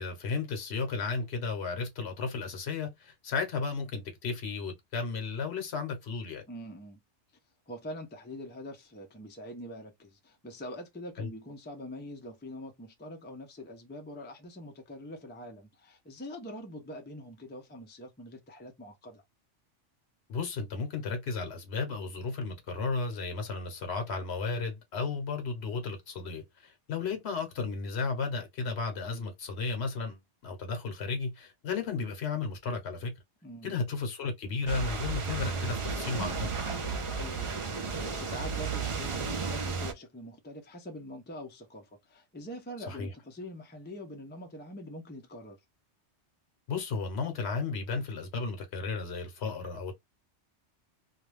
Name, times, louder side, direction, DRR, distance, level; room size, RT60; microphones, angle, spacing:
voice 1, 0.0-6.4 11.2-11.3 20.3-33.1 33.6-36.5 42.9-43.1 46.7-50.0, left 4 dB, 70° left, 1.0 m, -34 dB
voice 2, 6.5-7.0 7.7-19.2 33.4-33.8 37.2-45.6, left 1 dB, 15° left, 0.4 m, -44 dB
sound 1, 34.7-39.9, right 4 dB, 50° right, 0.4 m, -33 dB
2.5 x 2.2 x 3.1 m
omnidirectional pair, 1.2 m